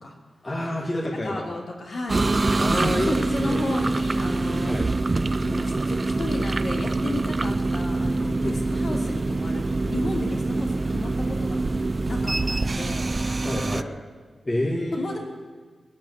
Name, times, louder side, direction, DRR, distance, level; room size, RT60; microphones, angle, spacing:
voice 1, 0.4-1.5 2.6-3.7 4.6-4.9 7.0-7.2 7.4-7.6 8.4-8.6 8.9-9.0 13.4-13.9 14.4-15.2, left 1 dB, 20° left, -2 dB, 1.9 m, -28 dB
voice 2, 1.2-2.5 2.8-4.8 5.4-13.0 13.5-13.9 15.0-15.2, left 2 dB, 50° left, 0 dB, 3.0 m, -33 dB
sound 1, 2.1-13.8, right 2 dB, 25° right, 0.4 m, -25 dB
20.5 x 8.5 x 8.0 m, 1.5 s
wide cardioid pair, 150°, 0 cm